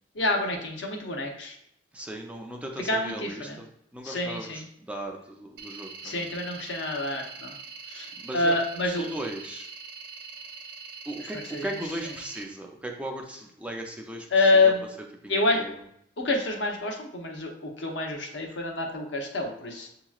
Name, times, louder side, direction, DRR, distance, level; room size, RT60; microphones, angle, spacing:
voice 1, 0.1-1.6 2.8-3.6 4.0-4.7 6.0-7.5 7.9-9.1 11.2-12.1 14.3-14.8 15.3-15.6 16.2-20.0, left 2 dB, 75° left, 1 dB, 0.8 m, -27 dB
voice 2, 1.9-3.7 3.9-6.3 8.2-8.6 8.8-9.7 11.1-14.3 15.2-15.7, right 1 dB, 5° right, 1 dB, 0.4 m, -37 dB
sound 1, 5.6-12.4, right 5 dB, 60° right, 0.6 m, -43 dB
7.0 x 2.9 x 2.4 m, 0.72 s
head